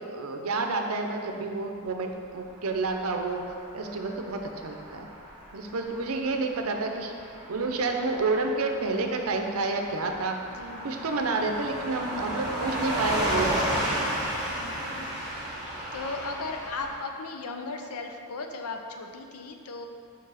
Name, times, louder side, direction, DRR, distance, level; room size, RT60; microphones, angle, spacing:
voice 1, 0.0-3.4 3.7-5.1 5.5-7.1 7.5-10.4 10.8-14.0, right 3 dB, 70° right, 4 dB, 0.6 m, -29 dB
Car passing by / Truck, 2.6-17.0, right 1 dB, 20° right, 1.6 m, -34 dB
voice 2, 10.5-11.0 14.6-15.1 15.9-19.9, left 3 dB, 75° left, 4 dB, 0.6 m, -37 dB
5.3 x 4.6 x 4.8 m, 2.3 s
head